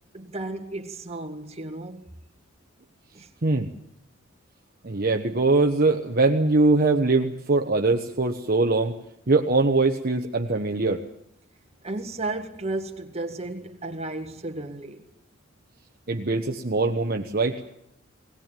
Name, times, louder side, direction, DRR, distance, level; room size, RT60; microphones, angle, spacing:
voice 1, 0.1-2.1 3.1-3.3 11.8-15.0, right 2 dB, 30° right, 1.9 m, -33 dB
voice 2, 4.8-9.0 9.3-11.0 16.1-17.6, right 3 dB, 45° right, 1.1 m, -22 dB
20.0 x 18.5 x 9.1 m
head